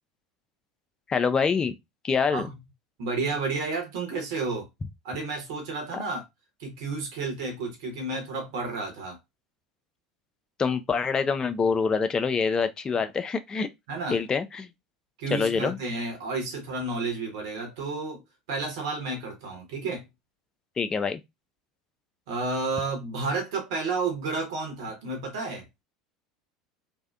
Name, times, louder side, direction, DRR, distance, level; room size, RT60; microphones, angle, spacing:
voice 1, 1.1-1.7 2.0-2.5 5.9-6.0 10.6-13.7 14.1-14.7 15.3-15.8 20.8-21.2, left 5 dB, 25° left, 0.4 m, -25 dB
voice 2, 3.0-4.7 5.0-6.2 6.6-9.2 13.9-14.2 15.2-18.2 18.5-20.0 22.3-25.6, right 3 dB, 65° right, 1.0 m, -31 dB
2.5 x 2.1 x 2.3 m
hypercardioid pair, 75°, 3 cm